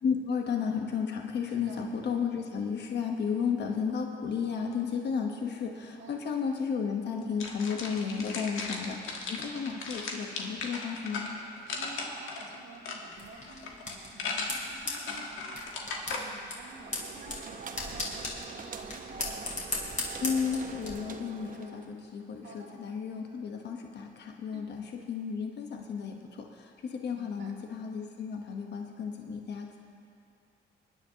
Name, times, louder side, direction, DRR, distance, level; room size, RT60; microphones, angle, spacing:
voice 1, 0.0-11.4 20.2-29.8, left 6 dB, 60° left, 2 dB, 1.2 m, -33 dB
voice 2, 1.5-1.9 5.9-6.2 8.3-8.6 11.7-19.6 22.4-22.8 24.5-24.8 27.1-27.5, right 4 dB, 65° right, 0 dB, 1.9 m, -50 dB
sound 1, 7.4-16.2, left 4 dB, 85° left, 1.6 m, -37 dB
sound 2, 13.2-20.9, left 2 dB, 40° left, 3.2 m, -38 dB
sound 3, 16.5-22.0, right 5 dB, 45° right, 0.9 m, -44 dB
24.0 x 10.5 x 2.9 m, 2.4 s
cardioid pair, 90°, 20 cm